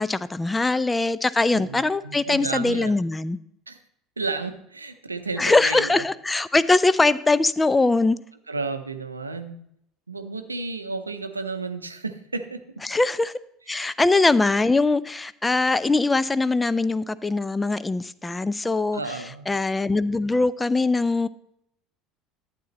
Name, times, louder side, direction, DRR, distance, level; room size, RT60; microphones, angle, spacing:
voice 1, 0.0-3.4 5.4-8.2 12.8-13.3 13.7-19.0 19.5-21.3, left 3 dB, 15° left, 16 dB, 0.4 m, -22 dB
voice 2, 1.5-2.9 3.7-3.8 4.2-6.0 8.5-9.6 10.1-12.9 13.7-13.8 18.9-19.5, right 3 dB, 85° right, 9 dB, 0.6 m, -32 dB
11.5 x 8.3 x 3.1 m, 0.74 s
figure-of-eight pair, 65°, 0 cm